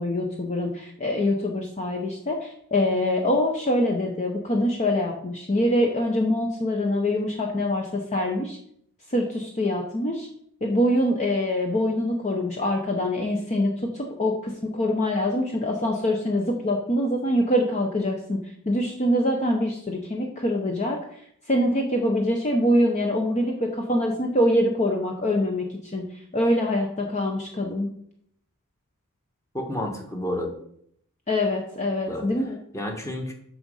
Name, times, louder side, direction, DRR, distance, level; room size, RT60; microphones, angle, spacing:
voice 1, 0.0-8.6 9.1-10.3 10.6-21.0 21.5-26.1 26.3-27.9 31.3-32.6, left 1 dB, 30° left, 1 dB, 0.9 m, -24 dB
voice 2, 29.5-30.5 32.1-32.2 32.7-33.3, left 1 dB, 15° left, 2 dB, 1.5 m, -30 dB
6.8 x 6.3 x 5.5 m, 0.68 s
head